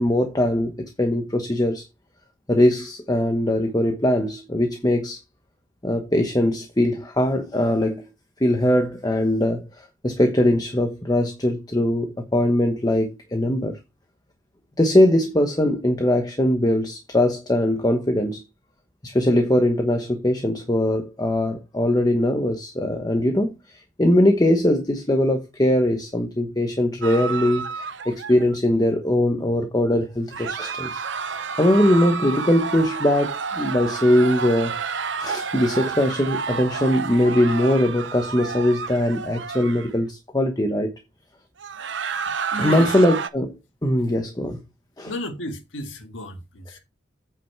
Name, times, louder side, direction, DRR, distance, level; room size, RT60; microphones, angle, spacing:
voice 1, 0.0-1.8 2.5-5.2 5.8-8.0 8.4-13.8 14.8-18.4 19.0-31.0 31.6-34.7 35.2-40.9 42.6-44.6 45.0-45.1, left 1 dB, 20° left, 1.0 m, -21 dB
sound 1, 27.0-28.6 30.3-39.9 41.6-43.3, right 5 dB, 65° right, 0.8 m, -30 dB
voice 2, 42.0-43.0 45.1-46.8, left 1 dB, 75° left, 1.8 m, -34 dB
8.9 x 5.6 x 4.5 m
head